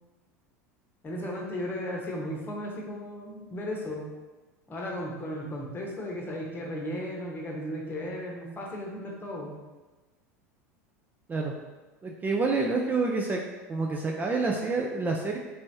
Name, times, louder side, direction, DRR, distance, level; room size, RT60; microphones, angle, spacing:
voice 1, 1.0-4.1 4.7-9.5, equal, 25° left, -1 dB, 0.9 m, -35 dB
voice 2, 12.0-13.4 13.7-15.4, right 3 dB, 20° right, 0 dB, 0.4 m, -28 dB
3.4 x 3.1 x 2.7 m, 1.2 s
hypercardioid pair, 80°, 8 cm